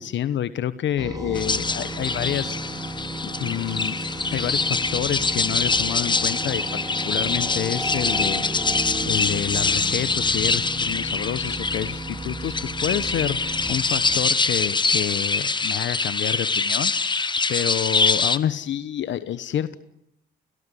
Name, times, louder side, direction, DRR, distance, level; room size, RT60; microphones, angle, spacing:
voice 1, 0.0-3.0 3.4-3.9 4.3-8.4 9.0-19.8, left 10 dB, 70° left, 14 dB, 1.2 m, -28 dB
sound 1, 1.0-15.1, right 2 dB, 20° right, 4.3 m, -34 dB
sound 2, 1.4-18.4, left 4 dB, 25° left, 1.2 m, -24 dB
30.0 x 18.0 x 10.0 m, 0.77 s
cardioid pair, 90°, 20 cm